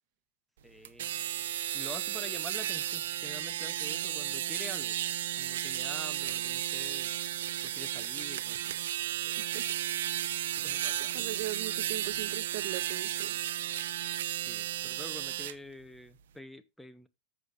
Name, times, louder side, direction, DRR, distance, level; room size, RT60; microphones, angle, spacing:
voice 1, 0.6-1.1 1.7-5.0 5.4-7.1 7.6-8.6 10.5-11.3 14.5-17.1, left 1 dB, ahead, 0.6 m, -46 dB
sound 1, 0.8-15.5, right 12 dB, 80° right, 0.8 m, -34 dB
voice 2, 11.1-13.3, right 17 dB, 50° right, 1.0 m, -39 dB
14.0 x 6.6 x 2.5 m
supercardioid pair, 160°, 0 cm